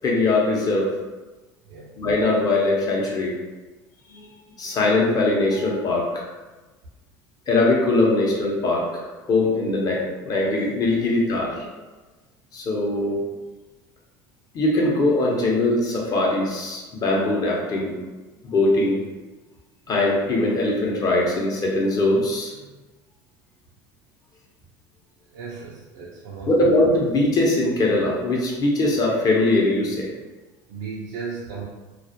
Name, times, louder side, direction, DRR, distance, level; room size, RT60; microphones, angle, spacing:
voice 1, 0.0-0.9 2.0-3.3 4.1-4.3 4.6-6.3 7.5-11.7 12.5-13.2 14.5-17.9 18.4-19.0 19.9-22.5 26.5-30.1, left 2 dB, 40° left, -2 dB, 0.7 m, -21 dB
voice 2, 25.3-26.7 30.7-31.6, right 5 dB, 80° right, -6 dB, 0.5 m, -35 dB
2.3 x 2.0 x 2.7 m, 1.2 s
supercardioid pair, 95°, 10 cm